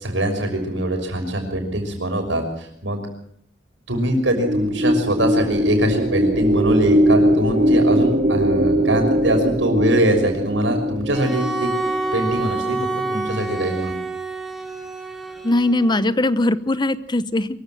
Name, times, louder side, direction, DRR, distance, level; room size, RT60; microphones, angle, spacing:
voice 1, 0.0-3.0 3.9-11.7 12.1-12.8 13.1-13.9, right 1 dB, 85° right, 4 dB, 6.0 m, -23 dB
sound 1, 4.2-12.7, equal, 40° right, 2.6 m, -20 dB
Bowed string instrument, 11.1-16.1, right 3 dB, ahead, 3.3 m, -28 dB
voice 2, 15.4-17.5, left 1 dB, 25° left, 14 dB, 0.8 m, -20 dB
23.5 x 15.0 x 7.7 m, 0.66 s
head